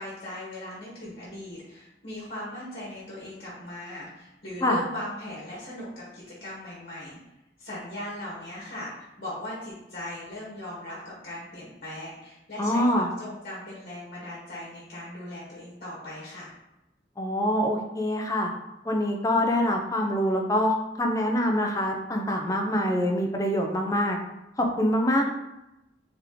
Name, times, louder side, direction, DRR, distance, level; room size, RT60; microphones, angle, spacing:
voice 1, 0.0-7.2 7.6-16.5, left 1 dB, 55° left, -7 dB, 1.3 m, -39 dB
voice 2, 12.6-13.1 17.2-18.5 18.8-24.2 24.6-25.3, left 1 dB, 20° left, 1 dB, 0.5 m, -25 dB
3.5 x 2.9 x 3.8 m, 0.93 s
head